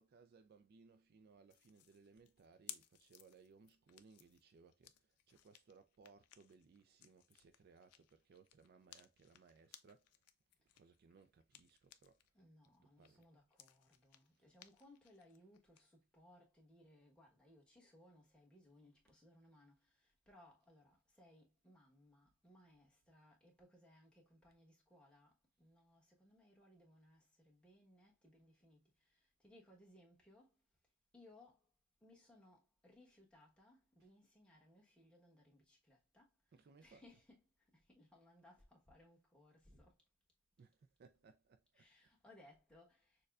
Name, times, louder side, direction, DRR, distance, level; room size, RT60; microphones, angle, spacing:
voice 1, 0.0-10.2 10.7-12.2 13.0-13.3 14.3-14.5 34.0-34.1 36.5-37.1 40.6-41.9, right 4 dB, 45° right, 0.3 m, -65 dB
sound 1, 1.5-12.3 12.6-15.8, left 12 dB, 90° left, 0.4 m, -61 dB
voice 2, 12.3-25.3 25.6-30.6 31.1-31.6 32.0-36.3 36.8-37.4 37.7-40.0 41.7-43.2, left 1 dB, 5° left, 1.1 m, -66 dB
6.5 x 2.2 x 2.4 m
head